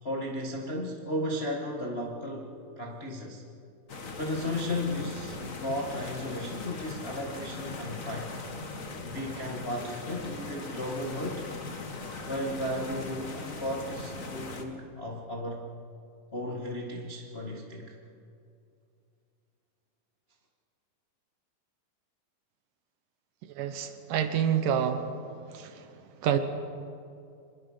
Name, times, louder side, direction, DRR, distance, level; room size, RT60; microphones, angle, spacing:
voice 1, 0.0-3.4 4.2-8.3 9.0-11.4 12.2-15.6 16.3-17.9, left 1 dB, 35° left, -1 dB, 0.9 m, -35 dB
sound 1, 3.9-14.6, left 3 dB, 90° left, 0.7 m, -39 dB
voice 2, 23.6-25.1 25.5-26.4, right 9 dB, 70° right, 8 dB, 2.6 m, -28 dB
25.5 x 21.0 x 5.6 m, 2.5 s
omnidirectional pair, 4.2 m